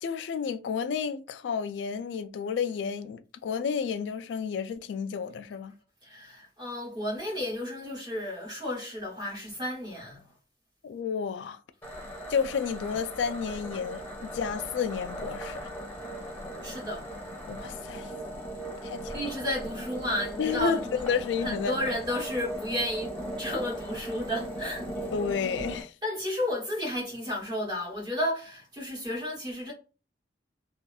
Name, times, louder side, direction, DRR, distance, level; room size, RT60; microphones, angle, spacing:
voice 1, 0.0-5.7 10.8-11.6 12.3-14.0 14.3-15.6 17.5-18.1 18.8-19.2 20.4-21.8 25.1-25.9, left 6 dB, 90° left, 0.3 m, -31 dB
voice 2, 6.0-10.2 16.6-17.1 19.1-20.8 21.4-24.9 26.0-29.7, left 1 dB, 25° right, 0.9 m, -32 dB
sound 1, 11.8-25.8, right 1 dB, 10° left, 0.8 m, -38 dB
2.7 x 2.4 x 2.2 m
head